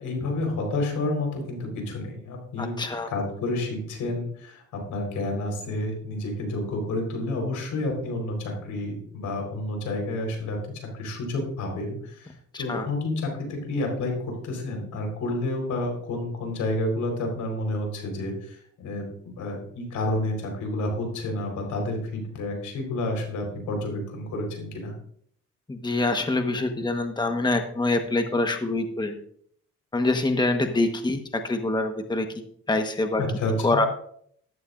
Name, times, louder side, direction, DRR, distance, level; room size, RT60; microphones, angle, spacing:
voice 1, 0.0-2.8 3.1-10.6 10.9-24.9 33.2-33.7, left 2 dB, 85° left, 2 dB, 4.4 m, -30 dB
voice 2, 2.6-3.1 12.5-12.9 25.7-29.2 29.9-32.3 32.7-33.2 33.6-33.9, left 2 dB, 15° left, 5 dB, 1.3 m, -25 dB
14.5 x 12.5 x 2.6 m, 0.64 s
cardioid pair, 90°, 30 cm